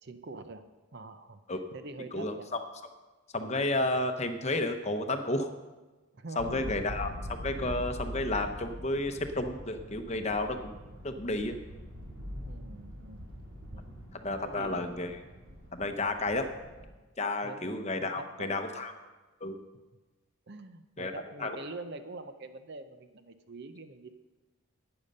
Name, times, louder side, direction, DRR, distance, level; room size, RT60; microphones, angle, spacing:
voice 1, 0.0-0.6 0.9-1.4 1.7-2.5 6.1-6.7 7.5-7.7 12.4-13.9 14.4-14.9 17.4-17.7 18.2-18.5 20.5-24.1, right 3 dB, 50° right, 9 dB, 0.7 m, -45 dB
voice 2, 2.1-2.6 3.3-5.5 6.4-10.7 11.0-11.6 14.2-15.2 15.7-16.5 17.2-18.9 19.4-19.6 21.0-21.1 21.4-21.6, left 2 dB, 30° left, 6 dB, 0.8 m, -31 dB
sound 1, 6.4-16.9, equal, 80° right, 2.5 m, -43 dB
11.5 x 8.9 x 5.4 m, 1.2 s
head